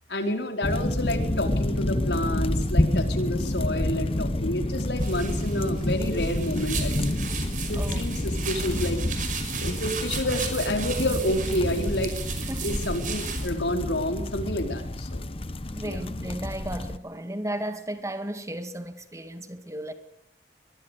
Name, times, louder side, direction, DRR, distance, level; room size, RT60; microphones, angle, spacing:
voice 1, 0.1-7.2 7.7-9.0 9.6-12.1 12.6-15.2 15.8-16.0, left 1 dB, 80° left, 4.5 m, -29 dB
sound 1, 0.6-17.0, left 1 dB, 35° left, 1.0 m, -29 dB
sound 2, 5.0-13.5, right 5 dB, 50° right, 5.7 m, -35 dB
voice 2, 12.4-12.9 15.7-19.9, right 1 dB, 15° right, 2.1 m, -34 dB
24.0 x 21.5 x 8.3 m
head